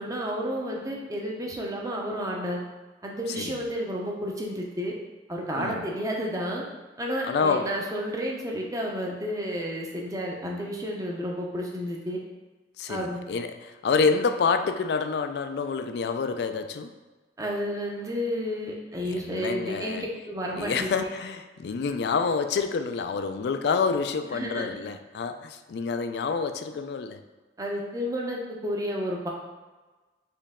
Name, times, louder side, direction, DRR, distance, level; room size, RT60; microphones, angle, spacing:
voice 1, 0.0-2.6 3.0-4.9 5.3-6.6 7.0-12.2 12.9-13.2 17.4-21.0 24.3-24.8 27.6-29.3, equal, 20° right, -1 dB, 0.6 m, -31 dB
voice 2, 5.6-5.9 7.3-7.7 12.8-16.9 19.0-20.1 20.5-27.2, left 5 dB, 65° left, 9 dB, 0.3 m, -28 dB
4.4 x 3.0 x 3.5 m, 1.2 s
head